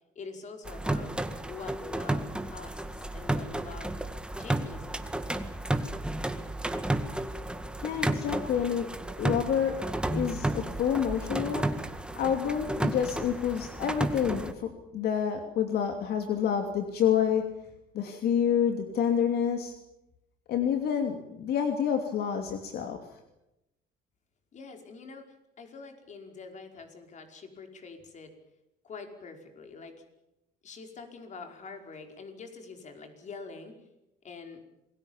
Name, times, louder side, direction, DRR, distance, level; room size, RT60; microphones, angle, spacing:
voice 1, 0.1-1.1 1.5-4.0 4.4-5.2 24.5-28.3 28.8-30.0 30.6-33.8 34.2-34.6, left 4 dB, 45° left, 5 dB, 5.1 m, -45 dB
sound 1, 0.6-14.5, right 1 dB, 5° right, 1.9 m, -32 dB
voice 2, 7.8-8.9 9.2-9.8 10.1-11.7 12.2-17.4 17.9-19.7 20.5-23.0, left 8 dB, 70° left, 5 dB, 2.9 m, -28 dB
27.5 x 21.0 x 7.3 m, 0.89 s
cardioid pair, 110°, 17 cm